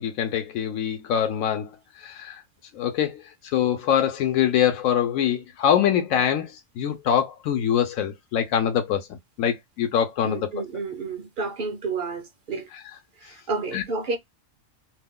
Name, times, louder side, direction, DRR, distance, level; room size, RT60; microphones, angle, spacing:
voice 1, 0.0-1.7 2.0-2.4 2.7-3.2 3.5-9.1 9.4-10.5 13.7-13.8, left 9 dB, 90° left, 1.0 m, -24 dB
voice 2, 10.2-12.7 13.2-14.2, right 3 dB, 55° right, 0.6 m, -30 dB
2.7 x 2.2 x 3.5 m
omnidirectional pair, 1.4 m